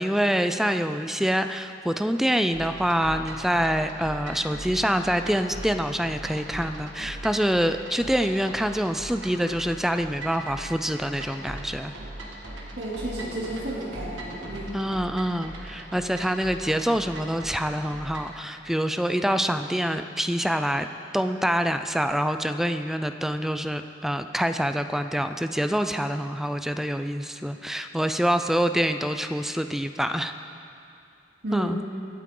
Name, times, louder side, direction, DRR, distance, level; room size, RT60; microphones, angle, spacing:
voice 1, 0.0-11.9 14.7-20.9 21.1-30.3 31.5-31.8, equal, ahead, 8 dB, 0.4 m, -26 dB
sound 1, 2.5-18.4, right 1 dB, 85° right, 1.8 m, -40 dB
voice 2, 12.8-14.7 31.4-31.9, right 1 dB, 60° right, -7 dB, 2.9 m, -32 dB
24.0 x 8.4 x 3.8 m, 2.5 s
head